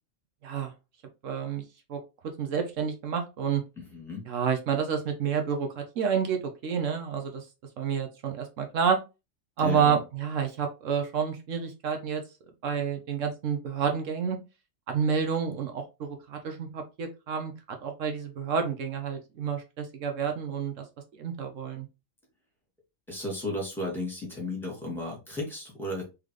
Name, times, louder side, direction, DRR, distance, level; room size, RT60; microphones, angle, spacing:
voice 1, 1.2-1.6 1.9-2.0 2.4-3.6 4.3-7.4 7.8-9.0 9.6-12.2 12.6-14.4 14.9-17.5 17.8-20.8 21.2-21.9, right 7 dB, 80° right, 5 dB, 1.2 m, -29 dB
voice 2, 3.8-4.3 9.6-10.0 23.1-26.0, left 1 dB, ahead, -4 dB, 2.0 m, -34 dB
3.8 x 3.4 x 3.2 m, 0.27 s
omnidirectional pair, 1.3 m